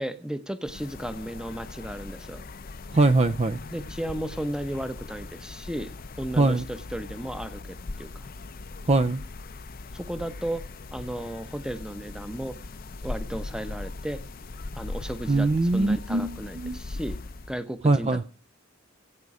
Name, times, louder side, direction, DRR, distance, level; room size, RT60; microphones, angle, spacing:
voice 1, 0.0-2.4 3.7-5.9 6.2-7.6 8.0-8.1 9.9-10.6 10.9-12.6 13.0-14.2 14.8-17.2 17.5-18.3, right 1 dB, 5° right, 11 dB, 0.8 m, -34 dB
sound 1, 0.6-17.6, left 3 dB, 50° left, 0.6 m, -40 dB
voice 2, 2.9-3.6 6.4-6.6 8.9-9.2 15.3-16.8 17.8-18.3, right 2 dB, 35° right, 12 dB, 0.5 m, -22 dB
15.5 x 8.3 x 4.9 m, 0.36 s
head